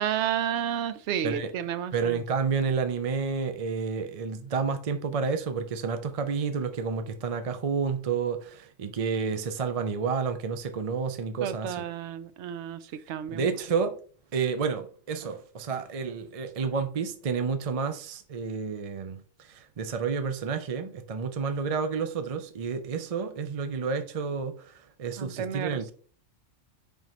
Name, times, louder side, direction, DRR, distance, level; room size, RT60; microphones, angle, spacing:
voice 1, 0.0-2.2 11.4-13.5 25.2-25.9, right 9 dB, 70° right, 0.8 m, -31 dB
voice 2, 1.9-11.8 13.3-14.0 14.3-19.2 19.5-24.7 25.0-25.9, right 5 dB, 45° right, 0.4 m, -30 dB
9.1 x 3.5 x 3.0 m
omnidirectional pair, 1.3 m